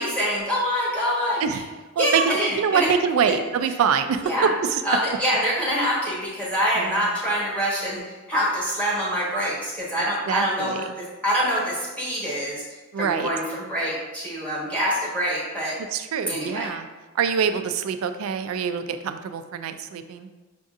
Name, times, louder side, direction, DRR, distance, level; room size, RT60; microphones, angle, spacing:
voice 1, 0.0-1.6 2.0-2.9 3.3-3.4 4.2-4.5 4.8-15.7 16.3-16.7, equal, 5° left, -7 dB, 1.2 m, -25 dB
voice 2, 2.0-4.2 4.7-4.8 6.8-7.0 10.3-10.8 12.9-13.3 15.9-16.9 17.2-20.3, right 7 dB, 75° right, 9 dB, 0.3 m, -25 dB
6.0 x 2.6 x 2.4 m, 1.2 s
head